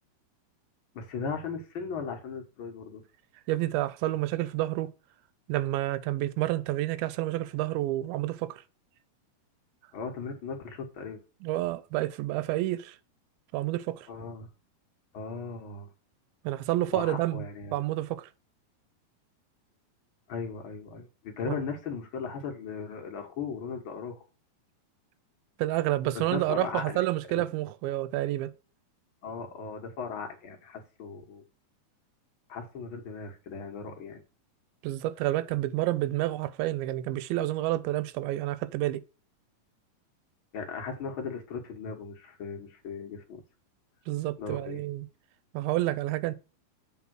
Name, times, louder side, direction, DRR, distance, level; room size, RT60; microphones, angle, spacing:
voice 1, 0.9-3.0 9.9-11.2 14.1-14.5 15.1-15.9 16.9-17.8 20.3-24.2 26.1-27.0 27.3-27.4 29.2-31.4 32.5-34.2 40.5-43.4 44.4-44.8, left 5 dB, 85° left, 1.1 m, -37 dB
voice 2, 3.5-4.9 5.5-8.6 11.4-13.0 13.5-14.1 16.4-17.4 17.7-18.3 21.5-21.6 25.6-28.5 34.8-39.0 44.1-45.1 45.5-46.3, right 15 dB, 90° right, 2.4 m, -29 dB
7.4 x 3.7 x 6.1 m
omnidirectional pair, 4.2 m